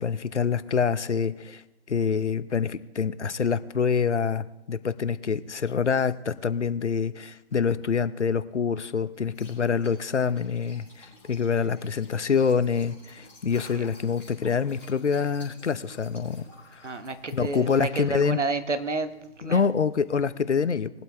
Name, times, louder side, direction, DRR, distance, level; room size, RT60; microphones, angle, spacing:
voice 1, 0.0-1.6 1.9-16.4 16.7-16.9 17.3-18.4 19.4-20.9, left 6 dB, 70° left, 15 dB, 0.8 m, -26 dB
Liquid, 9.1-20.3, left 1 dB, 5° left, 4.5 m, -52 dB
voice 2, 16.8-19.7, right 3 dB, 75° right, 10 dB, 1.3 m, -30 dB
21.0 x 8.2 x 3.5 m, 1.0 s
figure-of-eight pair, 145°, 36 cm